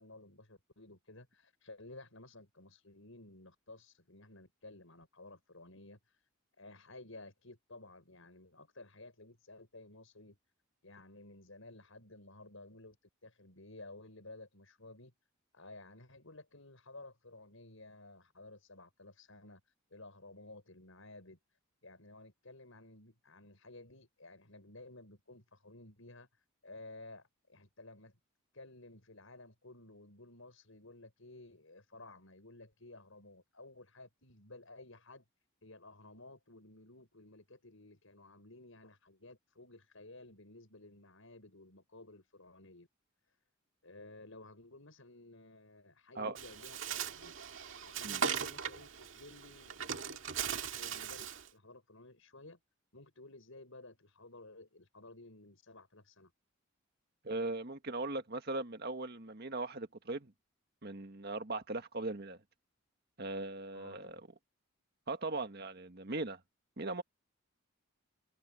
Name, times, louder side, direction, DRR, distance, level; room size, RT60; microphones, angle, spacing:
voice 1, 0.0-6.3 6.6-10.4 10.8-13.0 13.2-15.1 15.5-21.4 21.8-28.2 28.5-35.2 35.6-42.9 43.8-47.3 47.8-52.6 52.9-56.3 63.7-64.1, left 2 dB, 70° left, 6.0 m, -54 dB
Bird, 46.4-51.5, right 7 dB, 65° right, 2.1 m, -39 dB
voice 2, 57.2-60.3 60.8-62.4 63.2-64.2 65.1-66.4 66.8-67.0, right 2 dB, 50° right, 1.8 m, -39 dB
head